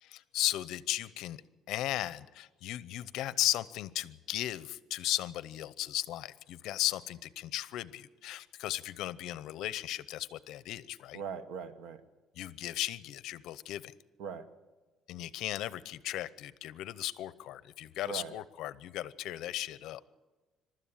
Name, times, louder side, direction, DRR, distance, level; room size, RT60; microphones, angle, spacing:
voice 1, 0.0-1.4 1.7-11.2 12.4-13.9 15.1-20.0, left 14 dB, 70° left, 17 dB, 0.7 m, -36 dB
voice 2, 11.1-12.0 14.2-14.4 18.0-18.3, right 6 dB, 80° right, 11 dB, 1.4 m, -40 dB
23.0 x 13.0 x 8.8 m, 1.2 s
cardioid pair, 165°, 0 cm